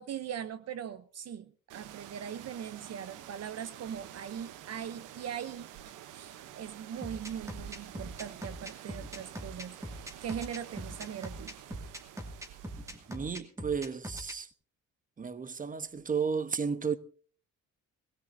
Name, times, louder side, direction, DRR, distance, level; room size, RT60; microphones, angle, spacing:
voice 1, 0.0-11.6, right 9 dB, 55° right, 0.7 m, -41 dB
sound 1, 1.7-13.4, right 11 dB, 85° right, 0.9 m, -49 dB
sound 2, 7.0-14.4, equal, 10° right, 2.3 m, -41 dB
voice 2, 13.1-14.5 15.2-17.0, right 6 dB, 25° right, 1.0 m, -33 dB
21.0 x 17.0 x 2.7 m
cardioid pair, 90°, 30 cm